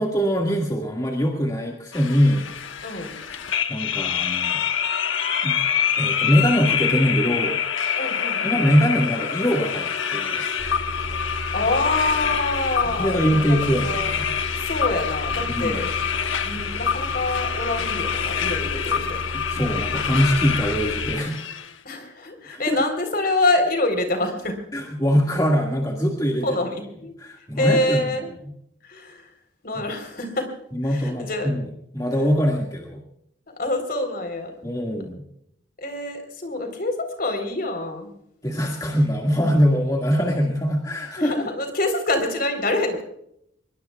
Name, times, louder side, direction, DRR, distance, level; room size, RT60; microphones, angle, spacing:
voice 1, 0.0-2.5 3.7-4.6 5.4-5.6 6.0-7.6 8.4-10.4 13.0-14.2 15.5-15.9 19.5-21.4 22.5-22.8 24.7-26.6 27.2-28.0 30.7-31.6 31.9-33.0 34.6-35.2 38.4-41.3, equal, 20° left, -1 dB, 2.0 m, -22 dB
sound 1, 1.9-21.7, left 8 dB, 75° left, 1.4 m, -26 dB
voice 2, 2.8-3.2 8.0-8.6 11.5-14.1 14.5-15.9 16.4-19.2 21.8-24.6 26.4-27.1 27.6-28.3 28.8-29.3 29.6-30.5 30.8-31.5 33.6-34.5 35.8-38.1 41.2-43.0, left 2 dB, 45° left, 6 dB, 3.9 m, -26 dB
sound 2, 10.6-21.1, equal, 45° right, 1.9 m, -34 dB
24.5 x 21.5 x 2.4 m, 0.73 s
head